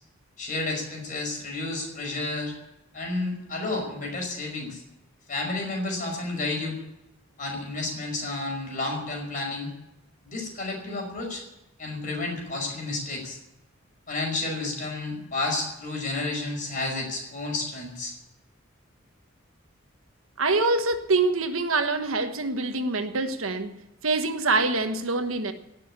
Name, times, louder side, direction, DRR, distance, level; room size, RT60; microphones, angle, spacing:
voice 1, 0.4-2.5 2.9-4.8 5.3-6.8 7.4-9.7 10.3-11.4 11.8-13.4 14.1-18.1, left 2 dB, 40° left, 5.4 m, -31 dB
voice 2, 20.4-23.7 24.0-25.5, right 3 dB, 85° right, 1.3 m, -25 dB
18.0 x 6.8 x 10.0 m
head